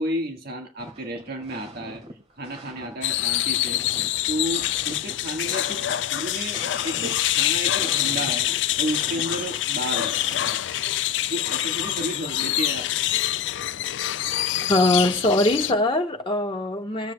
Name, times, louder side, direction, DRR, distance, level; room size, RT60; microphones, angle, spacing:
voice 1, 0.0-2.0 2.4-3.8 4.3-8.5 8.8-10.2 11.3-12.9, right 1 dB, 55° right, 1.6 m, -32 dB
sound 1, 0.8-2.1 2.4-10.7, right 1 dB, 35° right, 2.2 m, -42 dB
sound 2, 3.0-15.7, left 14 dB, 75° left, 0.4 m, -26 dB
voice 2, 14.6-17.1, left 2 dB, 30° left, 1.3 m, -22 dB
21.0 x 7.7 x 2.3 m
head